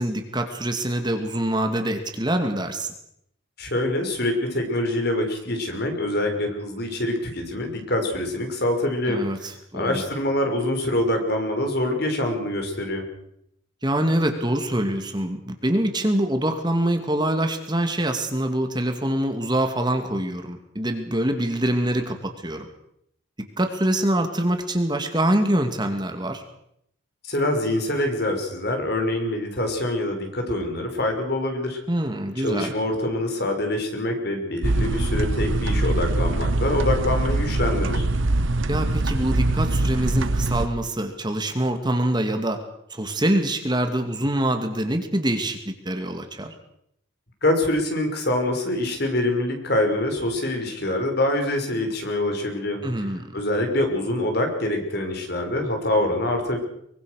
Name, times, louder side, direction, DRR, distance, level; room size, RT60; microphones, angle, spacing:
voice 1, 0.0-2.9 9.0-10.0 13.8-22.7 23.6-26.4 31.9-32.7 38.7-42.6 42.9-46.5 52.8-53.4, right 1 dB, 20° right, 5 dB, 2.3 m, -25 dB
voice 2, 3.6-9.2 9.7-13.0 27.2-31.8 32.4-38.1 47.4-53.1 53.3-56.6, left 1 dB, 50° left, 4 dB, 5.7 m, -25 dB
sound 1, 34.6-40.7, right 2 dB, 70° right, 1.1 m, -23 dB
24.0 x 23.0 x 6.5 m, 0.73 s
head